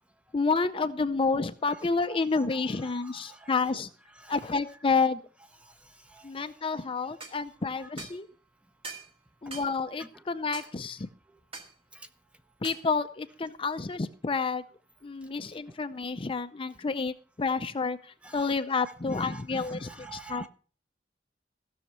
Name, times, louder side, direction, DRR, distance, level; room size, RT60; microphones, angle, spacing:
voice 1, 0.3-3.9 4.3-5.2 6.2-8.3 9.4-11.1 12.6-14.6 15.0-20.5, left 4 dB, 30° left, 10 dB, 0.5 m, -29 dB
voice 2, 2.1-3.5 4.3-4.4 4.9-5.1 7.8-7.9 18.2-18.5 19.1-20.5, right 4 dB, 5° right, 10 dB, 0.7 m, -47 dB
sound 1, 7.2-7.4 8.0-8.2 8.8-9.1 9.5-9.7 10.5-10.7 11.5-11.7 12.6-12.9, right 3 dB, 35° right, 1.8 m, -42 dB
16.0 x 6.4 x 5.7 m, 0.41 s
head